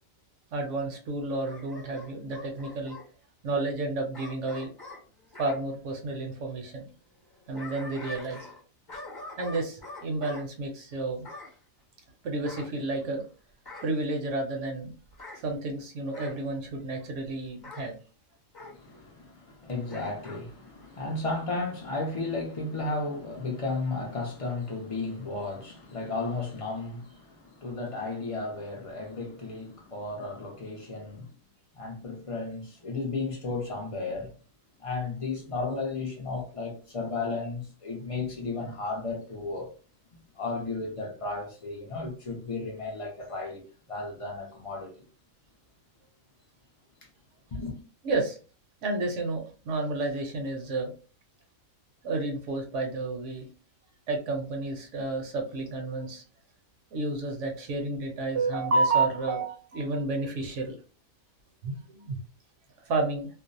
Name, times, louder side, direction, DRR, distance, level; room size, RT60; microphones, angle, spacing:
voice 1, 0.5-3.0 3.4-4.7 5.4-6.9 7.5-8.5 9.4-11.3 12.2-13.2 13.8-14.9 15.3-17.9 48.0-48.4 48.8-50.9 52.0-53.5 54.1-56.2 56.9-60.7 61.6-62.2 62.8-63.3, right 2 dB, 65° right, 0.9 m, -30 dB
Bark / Growling, 1.4-3.1 4.1-5.6 7.2-8.6 8.9-10.5 11.2-11.6 12.4-13.2 13.6-14.0 15.1-15.4 16.1-16.4 17.6-17.9 18.5-18.8 19.9-20.4 20.8-20.9, left 2 dB, 20° left, 0.7 m, -44 dB
voice 2, 18.6-31.3 31.7-34.3 34.8-39.7 40.1-45.0 47.5-47.8, left 3 dB, 50° left, 0.4 m, -34 dB
2.5 x 2.0 x 2.5 m
omnidirectional pair, 1.4 m